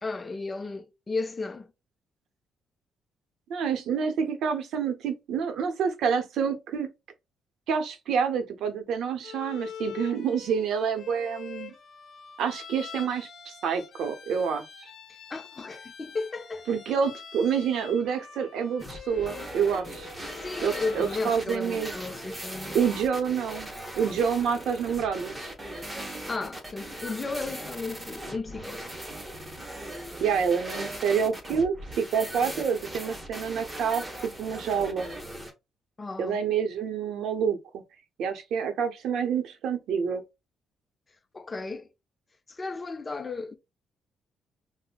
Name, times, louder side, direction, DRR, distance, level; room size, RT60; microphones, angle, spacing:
voice 1, 0.0-1.7 15.3-16.8 20.3-22.8 26.3-28.9 36.0-36.4 41.3-41.9 42.5-43.5, left 3 dB, 25° left, 0.5 m, -34 dB
voice 2, 3.5-6.9 7.7-11.7 12.4-14.6 16.7-20.1 20.6-22.0 22.7-25.5 30.2-35.1 36.2-37.8 38.2-40.2, right 7 dB, 80° right, 0.7 m, -28 dB
Bowed string instrument, 9.2-21.4, left 7 dB, 60° left, 0.8 m, -45 dB
sound 1, 18.8-35.5, right 1 dB, 15° right, 0.9 m, -39 dB
5.1 x 2.1 x 2.2 m
cardioid pair, 90°, 0 cm